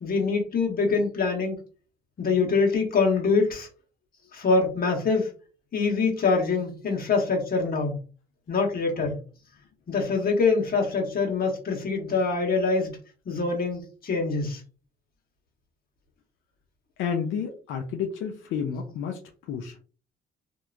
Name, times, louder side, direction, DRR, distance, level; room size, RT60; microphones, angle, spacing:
voice 1, 0.0-1.6 2.2-3.7 4.3-5.3 5.7-8.0 8.5-9.1 9.9-13.0 13.2-14.6, left 4 dB, 50° left, 0 dB, 1.3 m, -24 dB
voice 2, 17.0-19.8, left 7 dB, 80° left, 3 dB, 0.5 m, -31 dB
2.8 x 2.5 x 2.3 m, 0.38 s
cardioid pair, 90°, 20 cm